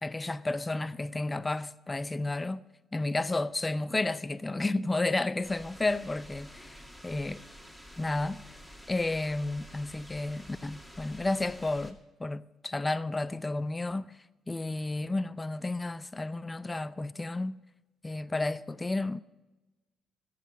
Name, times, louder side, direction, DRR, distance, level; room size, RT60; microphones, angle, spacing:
voice 1, 0.0-2.6 2.9-7.4 8.0-8.4 8.9-14.1 14.5-17.6 18.0-19.2, left 2 dB, 20° left, 0.5 m, -32 dB
sound 1, 5.4-11.9, equal, 10° right, 2.2 m, -50 dB
21.0 x 7.6 x 5.1 m
cardioid pair, 90°, 0 cm